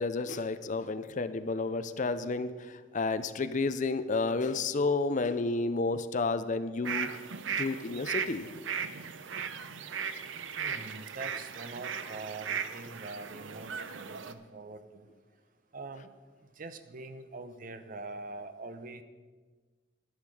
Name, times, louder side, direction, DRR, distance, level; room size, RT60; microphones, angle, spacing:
voice 1, 0.0-7.2 7.6-8.5, left 3 dB, 40° left, 12 dB, 0.5 m, -31 dB
sound 1, 6.8-14.3, right 7 dB, 85° right, 0.7 m, -37 dB
voice 2, 10.6-15.1 15.7-16.1 16.4-19.0, right 3 dB, 45° right, 10 dB, 0.7 m, -44 dB
12.0 x 10.5 x 4.8 m, 1.4 s
head